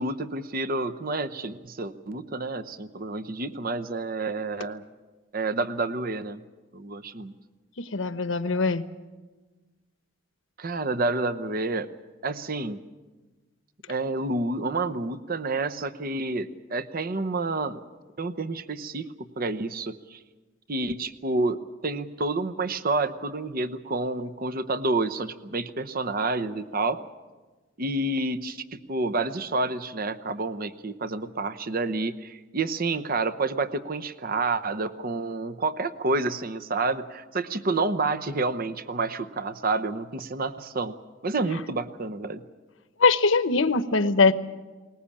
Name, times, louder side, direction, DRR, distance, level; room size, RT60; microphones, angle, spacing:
voice 1, 0.0-4.8 5.3-6.4 6.7-7.3 10.6-11.9 12.2-12.8 13.9-17.8 18.2-20.2 20.7-27.0 27.8-41.0 41.2-42.4, right 3 dB, 50° right, 12 dB, 0.9 m, -29 dB
voice 2, 7.8-8.8 43.0-44.3, left 4 dB, 75° left, 12 dB, 1.0 m, -21 dB
21.0 x 19.5 x 8.6 m, 1.3 s
head